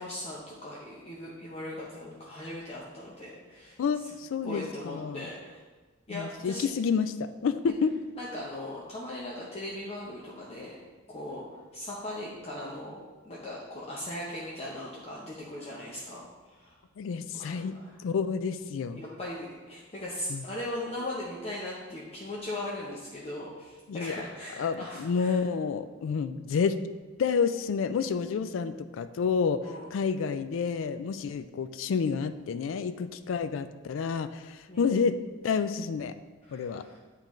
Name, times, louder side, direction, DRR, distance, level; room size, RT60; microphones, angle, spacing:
voice 1, 0.0-3.8 4.4-5.6 6.1-6.7 8.2-10.8 11.1-16.8 17.3-18.0 18.9-25.4 29.6-29.9 34.7-34.9 36.5-37.0, left 1 dB, 30° left, -5 dB, 0.7 m, -39 dB
voice 2, 3.8-5.3 6.1-8.0 17.0-19.0 20.3-20.4 23.9-24.2 24.6-26.8 27.2-35.2 35.4-36.1 36.5-36.8, left 5 dB, 80° left, 12 dB, 0.3 m, -29 dB
8.8 x 3.8 x 3.1 m, 1.3 s
head